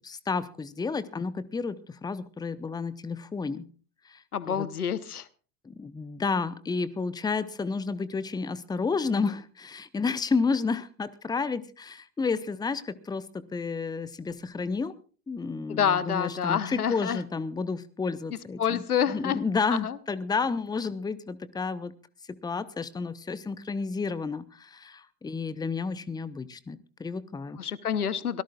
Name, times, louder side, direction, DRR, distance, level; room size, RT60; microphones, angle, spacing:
voice 1, 0.0-3.7 4.1-4.2 4.5-4.7 5.6-14.9 15.3-21.9 22.3-27.6, left 4 dB, 10° left, 16 dB, 0.9 m, -31 dB
voice 2, 4.3-5.3 15.7-17.2 18.6-19.4 19.7-20.0 27.6-28.4, left 8 dB, 75° left, 18 dB, 1.1 m, -28 dB
25.0 x 18.0 x 2.4 m, 0.38 s
figure-of-eight pair, 75°, 45 cm